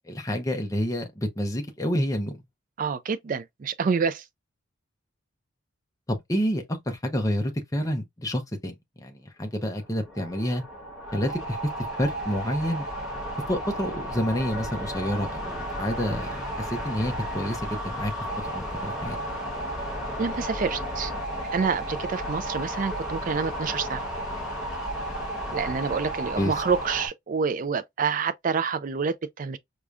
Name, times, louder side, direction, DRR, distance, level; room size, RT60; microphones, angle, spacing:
voice 1, 0.1-2.4 6.1-8.7 9.0-10.6 11.1-11.6 12.0-12.9 13.5-18.1 18.5-19.2 26.4-26.5, equal, 15° left, 0.6 m, -28 dB
voice 2, 2.8-4.2 20.2-21.1 21.5-24.0 25.5-29.6, right 5 dB, 40° right, 0.3 m, -27 dB
sound 1, 9.8-27.1, equal, 5° right, 1.3 m, -33 dB
4.8 x 2.2 x 2.5 m
head